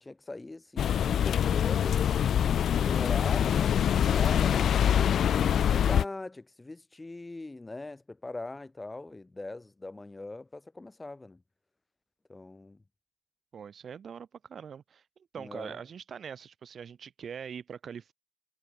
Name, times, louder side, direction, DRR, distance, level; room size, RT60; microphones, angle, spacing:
voice 1, 0.0-2.1 2.7-5.1 5.6-11.4 12.3-12.8 15.4-15.8, left 2 dB, 20° left, 2.0 m, -41 dB
sound 1, 0.8-6.0, left 9 dB, 60° left, 0.7 m, -25 dB
voice 2, 13.5-15.0 15.3-18.1, right 7 dB, 50° right, 4.7 m, -42 dB
cardioid pair, 90°, 0 cm